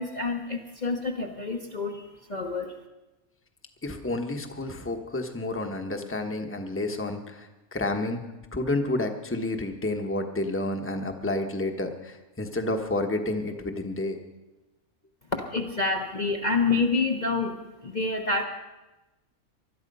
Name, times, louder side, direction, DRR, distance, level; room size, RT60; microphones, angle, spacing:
voice 1, 0.0-2.7 15.3-17.6 17.8-18.4, left 3 dB, 35° left, 1 dB, 1.1 m, -28 dB
voice 2, 3.8-8.2 8.5-14.2, left 2 dB, 10° left, 4 dB, 1.1 m, -30 dB
20.5 x 12.5 x 5.5 m, 1.1 s
omnidirectional pair, 1.5 m